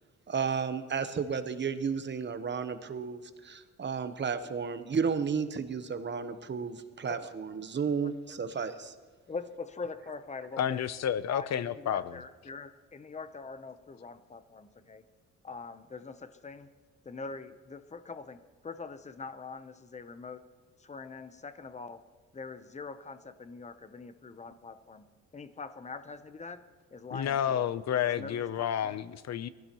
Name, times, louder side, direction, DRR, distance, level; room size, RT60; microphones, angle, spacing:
voice 1, 0.3-8.9, right 6 dB, 35° right, 10 dB, 1.0 m, -33 dB
voice 2, 9.3-10.8 11.3-15.1 15.4-16.7 17.0-20.4 20.8-22.0 22.3-27.6 28.1-29.0, left 4 dB, 20° left, 11 dB, 0.8 m, -43 dB
voice 3, 10.6-12.2 27.1-29.5, left 9 dB, 55° left, 15 dB, 0.7 m, -30 dB
22.5 x 15.5 x 3.0 m, 1.4 s
cardioid pair, 115°, 31 cm